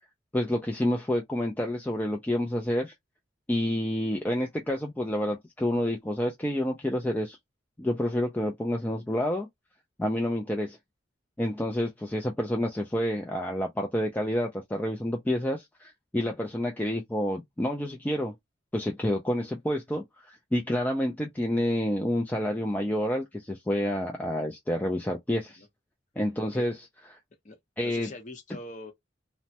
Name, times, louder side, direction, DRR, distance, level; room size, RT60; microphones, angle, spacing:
voice 1, 0.3-2.9 3.5-7.4 7.8-9.5 10.0-10.8 11.4-18.3 18.7-25.6 26.2-26.7 27.8-28.1, left 1 dB, 10° left, 0.3 m, -29 dB
voice 2, 27.4-28.9, left 2 dB, 40° left, 0.8 m, -43 dB
3.1 x 2.1 x 2.7 m
head